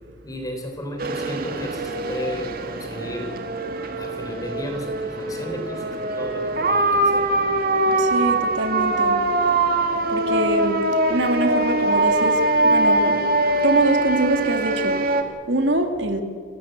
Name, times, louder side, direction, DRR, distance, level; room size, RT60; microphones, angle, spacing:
voice 1, 0.2-3.4 4.0-7.3, equal, 20° left, 4 dB, 4.0 m, -33 dB
sound 1, 1.0-15.2, right 2 dB, 55° right, 2.0 m, -22 dB
voice 2, 8.0-9.2 10.1-10.8 11.1-12.3 12.6-13.1 13.6-15.0 15.5-16.2, right 2 dB, 75° right, 6 dB, 2.6 m, -23 dB
29.0 x 14.0 x 8.2 m, 2.2 s
head